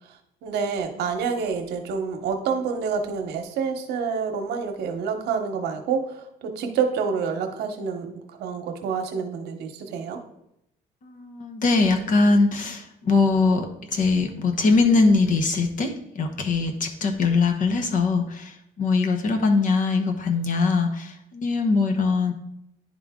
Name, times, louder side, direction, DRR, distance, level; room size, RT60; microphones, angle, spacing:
voice 1, 0.4-6.0 6.4-10.2, right 6 dB, 80° right, 5 dB, 0.9 m, -27 dB
voice 2, 11.1-18.5 18.8-22.3, left 3 dB, 50° left, 5 dB, 1.0 m, -22 dB
10.5 x 3.8 x 3.6 m, 0.79 s
cardioid pair, 110°, 17 cm